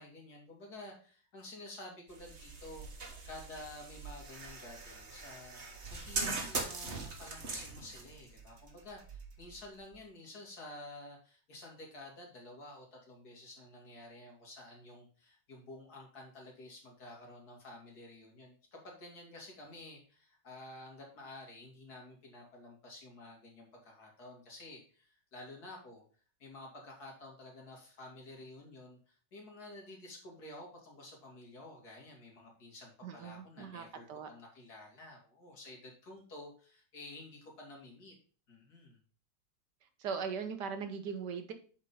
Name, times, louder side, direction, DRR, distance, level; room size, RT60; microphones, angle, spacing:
voice 1, 0.0-5.6 5.9-26.0 26.4-38.1 38.5-39.0, left 1 dB, 55° left, 0 dB, 2.8 m, -51 dB
sound 1, 2.1-10.0, right 3 dB, 40° right, 1.5 m, -42 dB
voice 2, 33.0-34.3 40.0-41.5, right 6 dB, 70° right, 8 dB, 1.5 m, -39 dB
7.8 x 4.5 x 5.4 m, 0.41 s
omnidirectional pair, 2.0 m